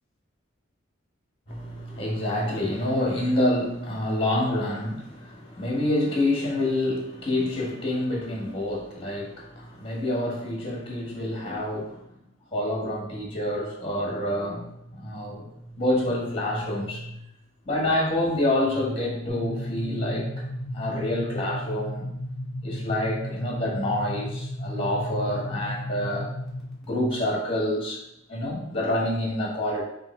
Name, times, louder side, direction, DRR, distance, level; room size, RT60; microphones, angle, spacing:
voice 1, 1.5-12.1 12.5-17.2 17.6-22.1 22.6-26.3 26.8-28.0 28.3-29.8, left 1 dB, 25° left, -2 dB, 1.3 m, -27 dB
sound 1, 19.3-26.8, left 1 dB, ahead, 1.2 m, -34 dB
3.6 x 3.1 x 4.3 m, 0.83 s
head